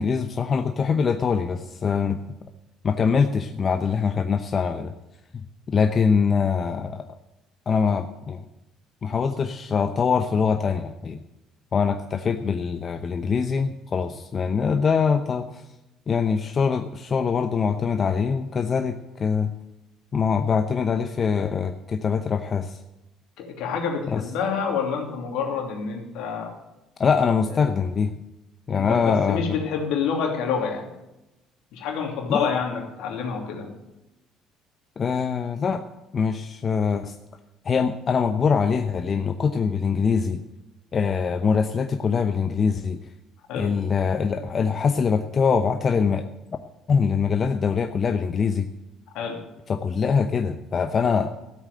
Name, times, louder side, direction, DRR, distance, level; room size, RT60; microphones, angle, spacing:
voice 1, 0.0-2.2 2.8-4.9 5.7-7.0 7.7-8.4 9.0-11.2 11.7-15.6 16.1-19.5 20.1-22.8 24.1-24.2 27.0-28.1 28.7-29.6 32.3-32.5 35.0-35.8 36.1-37.1 37.6-40.4 40.9-43.0 43.5-46.2 46.9-48.7 49.7-51.3, left 6 dB, 45° left, 7 dB, 0.8 m, -23 dB
voice 2, 23.4-26.5 27.5-27.7 28.7-30.9 31.7-33.7 43.5-43.8 49.1-49.4, left 6 dB, 75° left, 2 dB, 2.9 m, -28 dB
14.0 x 8.3 x 7.9 m, 0.97 s
hypercardioid pair, 65°, 0 cm